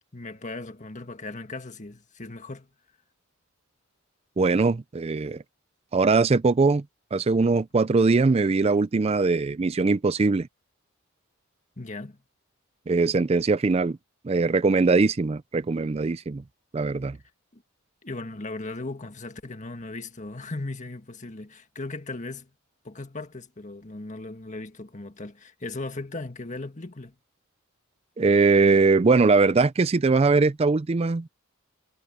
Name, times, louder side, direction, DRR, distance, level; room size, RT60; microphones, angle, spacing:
voice 1, 0.1-2.7 11.8-12.2 17.5-17.6 18.0-22.5 22.8-27.1, left 2 dB, 35° left, 1.8 m, -37 dB
voice 2, 4.4-5.4 5.9-6.8 7.1-10.5 12.9-14.0 14.2-16.4 16.7-17.2 28.2-31.3, right 4 dB, 30° right, 0.4 m, -21 dB
head